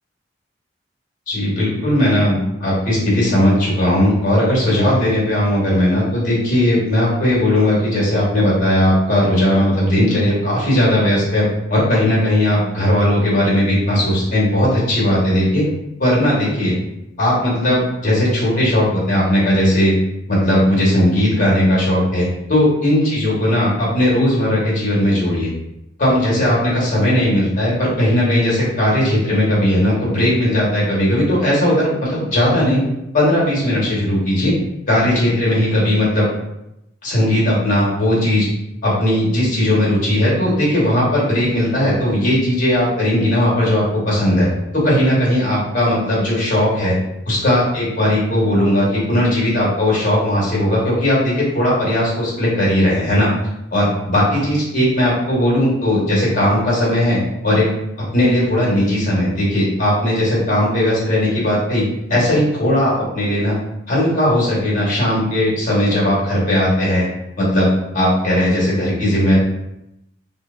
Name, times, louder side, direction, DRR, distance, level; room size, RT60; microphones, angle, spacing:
voice 1, 1.3-15.7 16.0-16.7 17.2-19.9 20.3-25.5 26.0-32.8 33.1-34.5 34.9-36.3 37.0-38.5 38.8-44.5 44.7-46.9 47.3-53.3 53.7-57.2 57.4-57.7 58.1-61.8 62.1-63.5 63.9-67.1 67.4-69.4, left 1 dB, 45° left, -6 dB, 1.1 m, -17 dB
2.8 x 2.0 x 2.4 m, 0.86 s
head